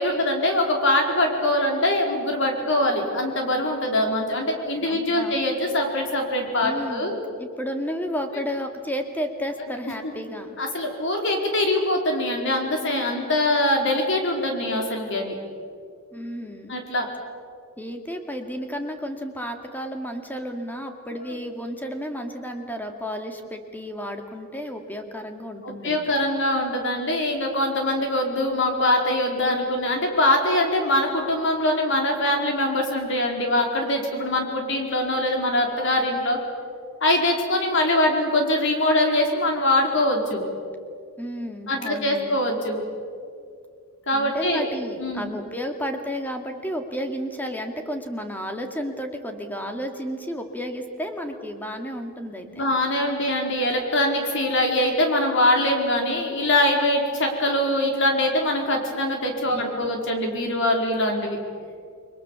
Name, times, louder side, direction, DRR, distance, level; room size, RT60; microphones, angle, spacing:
voice 1, 0.0-7.2 10.6-15.4 16.7-17.1 25.6-36.4 37.0-40.4 41.7-42.8 44.1-44.6 45.0-45.3 52.4-61.4, left 1 dB, 60° left, 2 dB, 4.6 m, -23 dB
voice 2, 4.8-5.4 6.6-10.6 16.1-16.7 17.8-26.1 41.2-42.4 44.1-52.6 59.5-60.0, equal, 10° left, 5 dB, 2.3 m, -32 dB
29.0 x 22.0 x 7.3 m, 2.3 s
head